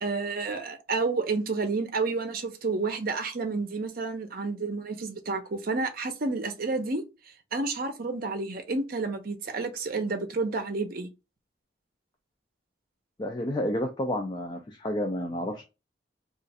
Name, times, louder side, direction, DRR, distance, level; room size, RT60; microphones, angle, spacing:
voice 1, 0.0-7.0 7.5-11.1, right 3 dB, 55° right, 0.7 m, -30 dB
voice 2, 13.2-15.6, left 1 dB, 25° left, 0.4 m, -30 dB
2.5 x 2.4 x 4.1 m
head